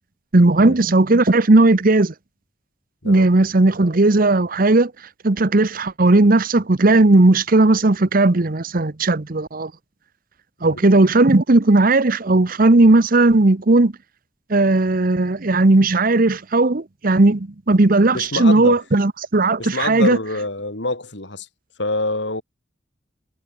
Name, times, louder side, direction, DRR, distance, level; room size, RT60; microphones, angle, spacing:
voice 1, 0.3-2.1 3.0-4.9 5.2-9.7 10.6-13.9 14.5-20.2, right 2 dB, 50° right, 1.0 m, -16 dB
voice 2, 18.1-18.8 19.6-21.5 21.8-22.4, left 2 dB, 65° left, 4.8 m, -26 dB
head